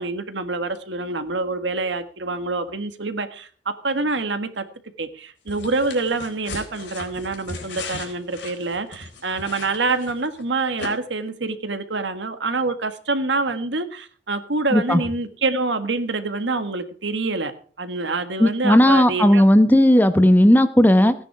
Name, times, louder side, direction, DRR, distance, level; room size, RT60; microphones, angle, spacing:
voice 1, 0.0-4.6 5.0-17.5 17.8-19.4, right 3 dB, 80° right, 9 dB, 1.7 m, -26 dB
sound 1, 5.5-10.4 10.8-10.9, left 3 dB, 80° left, 4.1 m, -37 dB
voice 2, 14.7-15.0 18.4-21.1, left 1 dB, 10° left, 11 dB, 0.9 m, -15 dB
16.5 x 10.0 x 4.8 m, 0.44 s
head